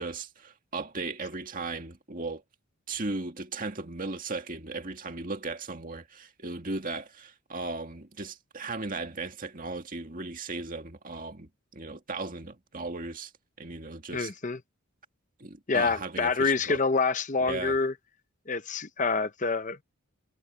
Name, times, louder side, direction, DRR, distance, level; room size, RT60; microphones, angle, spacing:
voice 1, 0.0-2.4 2.9-13.3 13.6-14.3 15.4-16.8 17.4-17.8, right 3 dB, 40° right, 2.1 m, -36 dB
voice 2, 14.1-14.6 15.7-17.9 18.5-19.8, left 4 dB, 35° left, 0.7 m, -27 dB
head